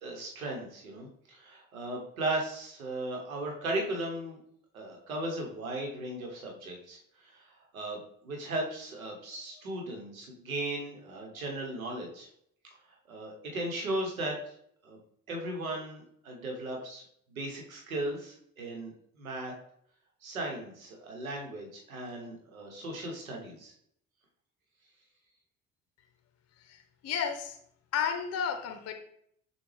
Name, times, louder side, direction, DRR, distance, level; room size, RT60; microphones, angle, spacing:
voice 1, 0.0-4.4 4.7-7.4 7.7-12.3 13.1-14.3 14.8-15.0 15.3-17.0 17.3-18.9 19.2-19.5 20.2-23.7, right 1 dB, 85° right, 1 dB, 1.0 m, -36 dB
voice 2, 26.7-27.6 27.9-28.9, left 7 dB, 40° left, 7 dB, 0.7 m, -32 dB
6.7 x 2.3 x 3.2 m, 0.68 s
figure-of-eight pair, 50°, 41 cm